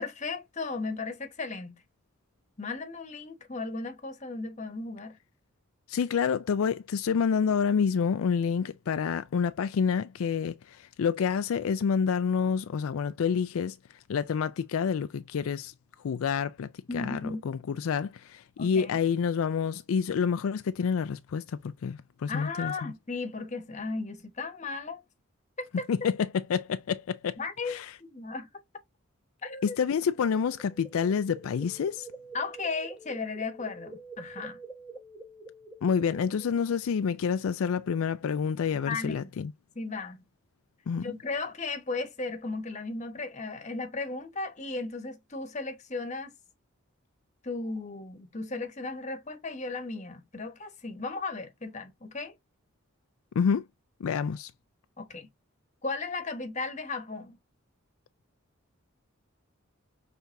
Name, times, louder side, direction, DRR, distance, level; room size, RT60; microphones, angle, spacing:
voice 1, 0.0-1.8 2.6-5.2 16.9-17.5 18.6-19.0 22.3-25.0 25.6-25.9 27.4-27.8 28.1-28.5 29.4-29.8 32.3-34.6 38.8-39.3 39.7-40.2 41.0-46.3 47.4-52.3 55.0-55.3 55.8-57.4, left 3 dB, 35° left, 1.1 m, -35 dB
voice 2, 5.9-13.7 14.1-15.7 16.0-16.7 16.9-21.4 21.8-22.7 25.9-27.4 27.7-27.9 29.6-32.1 35.8-39.5 40.9-41.1 53.4-53.6 54.0-54.5, left 6 dB, 80° left, 0.4 m, -28 dB
sound 1, 30.1-36.8, right 2 dB, 5° right, 1.1 m, -47 dB
5.9 x 3.4 x 2.6 m
head